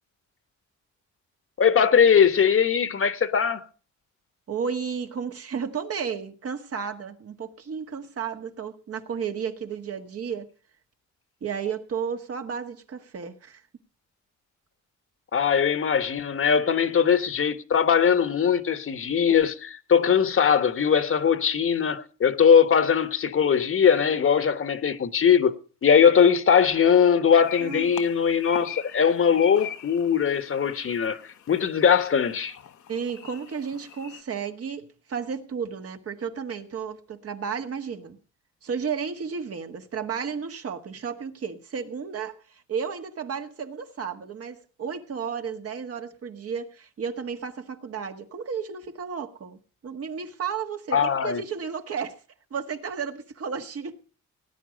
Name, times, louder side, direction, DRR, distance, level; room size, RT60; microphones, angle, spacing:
voice 1, 1.6-3.6 15.3-25.5 25.8-31.2 31.5-32.6 50.9-51.4, left 7 dB, 45° left, 1.3 m, -20 dB
voice 2, 4.5-10.5 11.4-13.6 27.6-27.9 32.9-38.2 38.6-49.6 49.8-52.2 52.5-54.0, right 6 dB, 50° right, 1.7 m, -33 dB
sound 1, 27.3-34.2, left 9 dB, 75° left, 1.2 m, -41 dB
17.5 x 9.6 x 5.2 m
cardioid pair, 90°, 30 cm